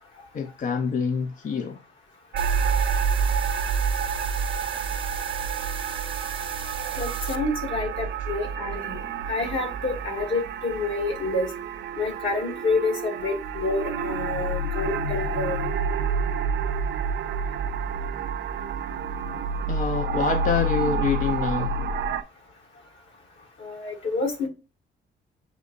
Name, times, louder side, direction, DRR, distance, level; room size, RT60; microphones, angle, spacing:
voice 1, 0.3-1.8 19.7-21.8, left 5 dB, 40° left, 0.5 m, -26 dB
sound 1, 2.3-22.2, right 4 dB, 65° right, 0.5 m, -28 dB
sound 2, 2.4-7.4, right 5 dB, 25° right, 0.7 m, -38 dB
voice 2, 7.0-9.0 9.3-11.5 12.0-15.7 23.6-24.5, left 2 dB, 70° left, 1.9 m, -28 dB
6.9 x 2.7 x 2.5 m
cardioid pair, 90°, 20 cm